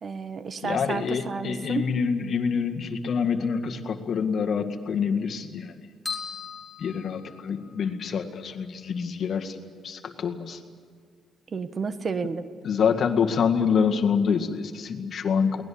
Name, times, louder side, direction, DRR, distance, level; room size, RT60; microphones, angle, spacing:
voice 1, 0.0-1.9 11.5-12.5, right 5 dB, 45° right, 11 dB, 1.3 m, -31 dB
voice 2, 0.6-5.7 6.8-9.6 9.8-10.6 12.6-15.6, left 6 dB, 55° left, 5 dB, 1.9 m, -26 dB
sound 1, 6.0-7.8, left 5 dB, 5° left, 4.1 m, -37 dB
23.0 x 19.0 x 8.7 m, 2.1 s
cardioid pair, 90°, 0 cm